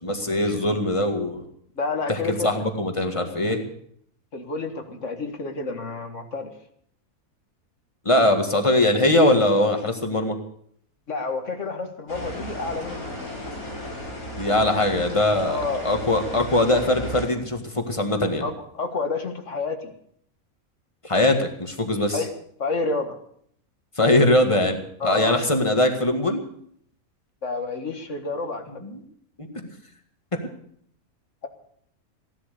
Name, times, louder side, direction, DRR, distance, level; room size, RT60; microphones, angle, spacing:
voice 1, 0.0-1.4 2.1-3.6 8.1-10.4 14.4-18.4 21.0-22.2 24.0-26.4 28.8-29.0 29.4-29.7 30.3-30.4, left 1 dB, 20° left, 5 dB, 1.9 m, -21 dB
voice 2, 1.8-2.5 4.3-6.5 11.1-13.3 14.7-15.0 15.4-15.9 18.4-19.9 22.1-22.3 22.6-23.2 25.0-25.4 27.4-28.8, left 3 dB, 55° left, 6 dB, 2.0 m, -29 dB
sound 1, 12.1-17.3, equal, 80° left, 5.9 m, -35 dB
16.0 x 11.5 x 6.8 m, 0.65 s
omnidirectional pair, 1.5 m